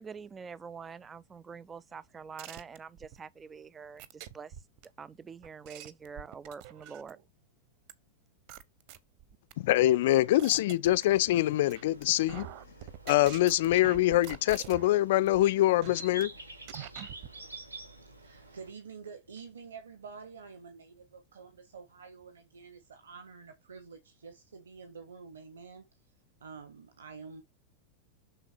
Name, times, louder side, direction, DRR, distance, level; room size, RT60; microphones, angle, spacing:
voice 1, 0.0-4.5 5.0-7.2, right 6 dB, 20° right, 0.4 m, -45 dB
sound 1, 2.4-3.2 4.0-4.9 5.4-7.2 7.9-8.0 8.5-9.5 10.0-11.4 11.7-12.0 12.3-15.0 15.3-15.4 15.8-16.2 16.7-17.3, right 11 dB, 45° right, 0.8 m, -45 dB
voice 2, 9.6-12.5 13.1-16.3, left 15 dB, 55° left, 0.4 m, -24 dB
sound 2, 11.3-18.7, right 2 dB, 85° right, 1.7 m, -49 dB
voice 3, 18.2-25.9 26.4-27.4, right 5 dB, 65° right, 1.2 m, -48 dB
6.8 x 3.8 x 4.3 m
figure-of-eight pair, 90°, 0 cm